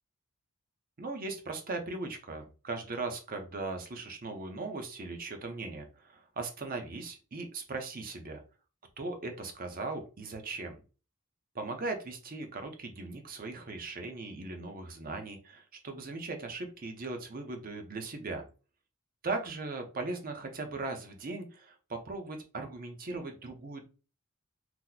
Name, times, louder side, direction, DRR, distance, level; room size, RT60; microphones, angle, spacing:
voice 1, 1.0-8.4 9.0-10.8 11.5-18.5 19.2-23.9, right 3 dB, 40° right, 5 dB, 0.7 m, -38 dB
2.9 x 2.1 x 3.8 m, 0.34 s
head